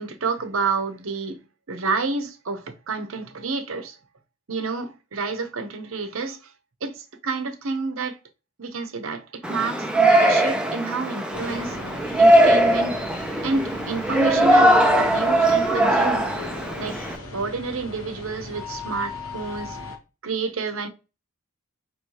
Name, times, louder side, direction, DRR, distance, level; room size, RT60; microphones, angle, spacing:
voice 1, 0.0-1.4 1.7-4.0 4.5-6.5 6.8-8.2 8.6-11.8 12.2-13.0 13.4-16.3 16.8-17.0 17.3-19.8 20.2-20.9, right 4 dB, 75° right, 0.8 m, -29 dB
Yell, 9.4-17.2, right 1 dB, 5° right, 0.5 m, -20 dB
sound 1, 11.3-20.0, left 2 dB, 75° left, 1.0 m, -36 dB
4.7 x 3.1 x 2.8 m
head